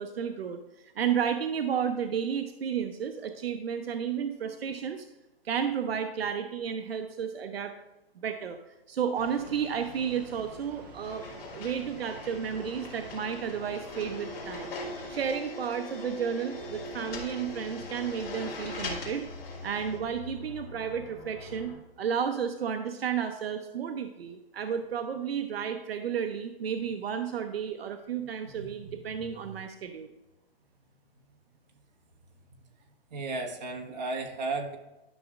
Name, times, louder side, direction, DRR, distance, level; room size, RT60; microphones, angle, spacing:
voice 1, 0.0-5.1 5.4-7.8 8.2-8.6 8.9-11.2 11.5-14.7 15.1-19.3 19.6-30.1, right 7 dB, 75° right, 6 dB, 0.7 m, -32 dB
sound 1, 9.1-15.3, right 2 dB, 20° right, 0.8 m, -48 dB
sound 2, 11.0-20.0, left 2 dB, 65° left, 2.6 m, -41 dB
sound 3, 16.5-21.8, left 2 dB, ahead, 1.5 m, -47 dB
voice 2, 28.5-29.3 33.1-34.8, right 3 dB, 45° right, 2 dB, 1.4 m, -35 dB
12.0 x 6.3 x 2.5 m, 1.0 s
hypercardioid pair, 180°, 31 cm